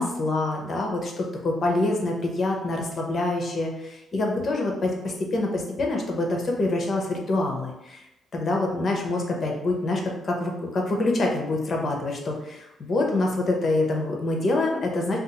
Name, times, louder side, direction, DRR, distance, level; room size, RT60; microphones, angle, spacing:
voice 1, 0.0-8.0 8.3-15.2, left 2 dB, 40° left, 0 dB, 0.8 m, -26 dB
2.5 x 2.4 x 4.1 m, 0.89 s
cardioid pair, 105°, 0 cm